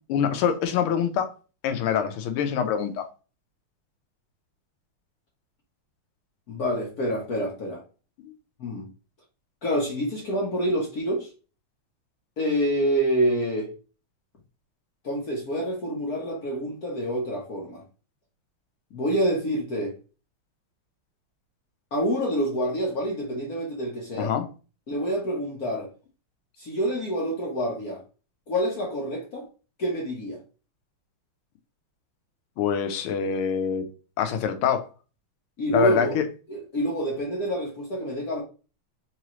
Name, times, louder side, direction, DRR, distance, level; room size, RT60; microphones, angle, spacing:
voice 1, 0.1-1.3 1.6-3.0 24.1-24.5 32.6-33.9 34.2-34.9 35.7-36.2, left 7 dB, 85° left, 1.6 m, -25 dB
voice 2, 6.5-7.8 8.6-8.9 9.6-11.3 12.4-13.7 15.0-17.8 18.9-19.9 21.9-24.3 24.9-25.9 26.6-28.0 28.5-29.4 29.8-30.4 35.6-36.1 36.5-38.4, equal, 55° left, 1.3 m, -27 dB
4.7 x 2.9 x 3.0 m
omnidirectional pair, 2.3 m